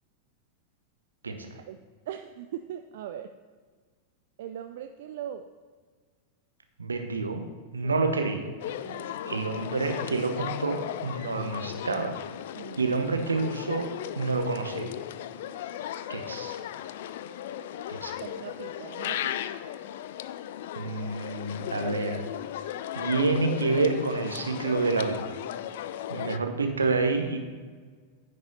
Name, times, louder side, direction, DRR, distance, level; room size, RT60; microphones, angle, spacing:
voice 1, 2.1-3.3 4.4-5.4 7.8-8.0 8.8-9.5 12.6-12.9 18.2-19.3, right 10 dB, 55° right, 8 dB, 0.4 m, -40 dB
voice 2, 6.8-7.4 7.7-8.5 9.3-12.2 12.8-13.9 14.2-14.9 16.1-16.6 17.9-18.2 20.8-22.2 22.9-25.3 26.1-27.4, right 3 dB, 75° right, 5 dB, 1.0 m, -28 dB
sound 1, 8.6-26.4, left 11 dB, 55° left, 0.3 m, -36 dB
9.8 x 5.3 x 5.4 m, 1.5 s
figure-of-eight pair, 90°, 0 cm